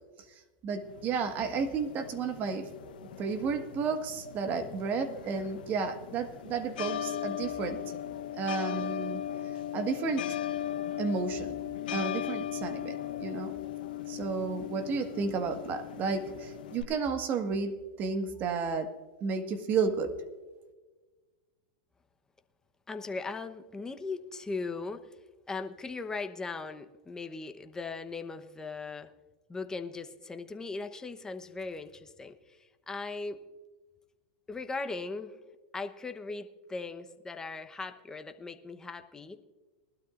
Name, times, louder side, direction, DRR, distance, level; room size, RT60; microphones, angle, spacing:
voice 1, 0.6-2.6 3.2-7.8 8.4-9.2 9.7-10.2 11.0-11.5 11.9-13.5 14.1-17.7 18.0-18.9 19.2-20.1, right 5 dB, 40° right, 7 dB, 1.6 m, -32 dB
sound 1, 0.8-16.8, left 11 dB, 75° left, 1.0 m, -38 dB
voice 2, 22.9-25.1 25.5-29.1 29.5-32.4 32.9-33.4 34.5-35.4 35.7-39.4, left 3 dB, 15° left, 7 dB, 1.0 m, -38 dB
20.5 x 12.5 x 2.5 m, 1.3 s
hypercardioid pair, 110°, 5 cm